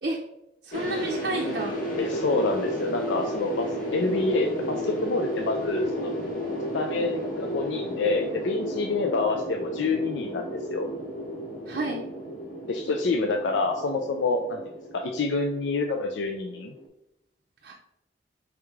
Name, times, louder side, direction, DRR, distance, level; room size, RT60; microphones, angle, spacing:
voice 1, 0.6-1.8 11.7-12.1 17.6-17.7, right 1 dB, 55° right, -3 dB, 0.5 m, -30 dB
sound 1, 0.7-16.9, equal, 50° left, 1.1 m, -33 dB
voice 2, 2.0-3.7 3.9-6.1 6.7-10.9 12.7-14.6 14.9-16.7, left 3 dB, 85° left, 4 dB, 0.4 m, -27 dB
4.8 x 3.1 x 3.5 m, 0.85 s
head